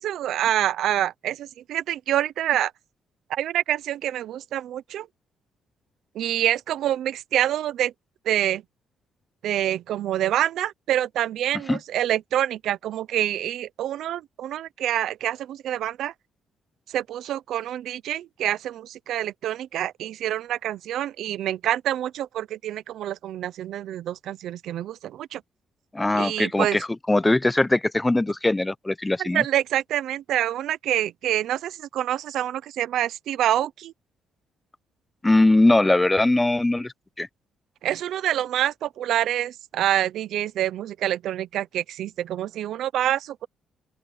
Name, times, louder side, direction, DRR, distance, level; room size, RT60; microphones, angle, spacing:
voice 1, 0.0-2.7 3.3-5.1 6.1-7.9 8.2-8.6 9.4-16.1 16.9-25.4 26.1-26.8 29.2-33.9 37.8-43.5, right 12 dB, 80° right, 0.8 m, -26 dB
voice 2, 25.9-29.4 35.2-37.3, left 2 dB, 15° left, 0.7 m, -21 dB
open air
cardioid pair, 90°, 0 cm